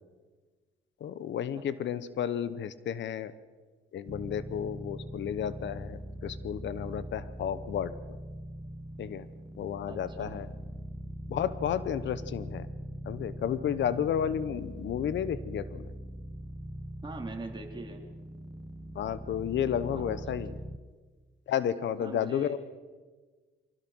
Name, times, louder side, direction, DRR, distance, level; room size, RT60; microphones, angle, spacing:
voice 1, 1.0-3.3 3.9-7.9 9.0-9.3 9.6-10.5 11.3-12.7 13.1-15.9 18.9-20.5 21.5-22.6, left 9 dB, 70° left, 15 dB, 1.0 m, -32 dB
sound 1, 4.1-20.8, equal, ahead, 1.1 m, -42 dB
voice 2, 9.9-10.3 17.0-18.0 19.9-20.3 22.0-22.5, right 3 dB, 25° right, 1 dB, 4.3 m, -42 dB
24.0 x 17.5 x 6.2 m, 1.4 s
cardioid pair, 90°, 20 cm